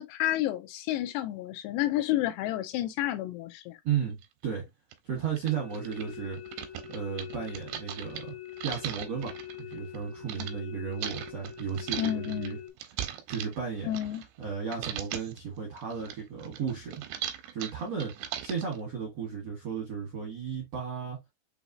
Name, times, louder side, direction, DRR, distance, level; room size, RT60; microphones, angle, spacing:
voice 1, 0.0-3.8 12.0-12.6 13.8-14.2, left 13 dB, 85° left, 2.7 m, -30 dB
voice 2, 3.8-4.2 4.4-4.6 5.0-6.4 6.9-8.3 8.6-12.6 13.0-14.0 14.4-17.0 17.5-21.2, right 7 dB, 70° right, 1.5 m, -34 dB
sound 1, 4.2-4.3 4.9-5.0 5.3-10.5 11.0-14.5 14.7-15.4 15.8-18.8, right 10 dB, 90° right, 2.8 m, -39 dB
sound 2, 5.5-12.7, left 11 dB, 65° left, 1.9 m, -44 dB
6.4 x 2.9 x 2.5 m
omnidirectional pair, 4.8 m